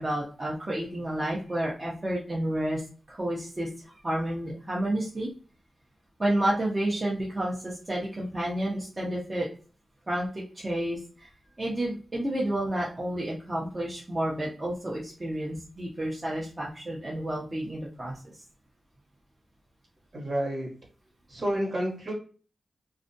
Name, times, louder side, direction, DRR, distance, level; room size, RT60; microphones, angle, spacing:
voice 1, 0.0-2.8 3.1-3.7 4.0-5.3 6.2-9.5 10.1-10.3 10.6-11.3 11.6-18.2, right 1 dB, 30° right, -4 dB, 0.6 m, -30 dB
voice 2, 20.1-20.7 21.3-22.1, right 1 dB, 55° right, -2 dB, 1.2 m, -29 dB
2.4 x 2.2 x 2.5 m, 0.38 s
wide cardioid pair, 90°, 0 cm